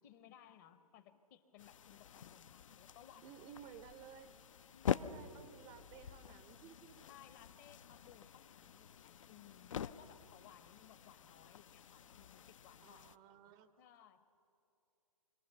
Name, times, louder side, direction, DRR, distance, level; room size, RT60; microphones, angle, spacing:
voice 1, 0.0-3.8 4.7-5.2 7.1-13.1 13.8-14.4, left 10 dB, 30° left, 11 dB, 1.0 m, -62 dB
sound 1, 1.6-13.2, left 8 dB, 60° left, 0.6 m, -46 dB
voice 2, 3.2-4.4 4.9-7.1 10.0-10.1 12.8-13.7, right 8 dB, 20° right, 12 dB, 0.6 m, -56 dB
25.5 x 18.0 x 6.9 m, 2.9 s
figure-of-eight pair, 130°, 19 cm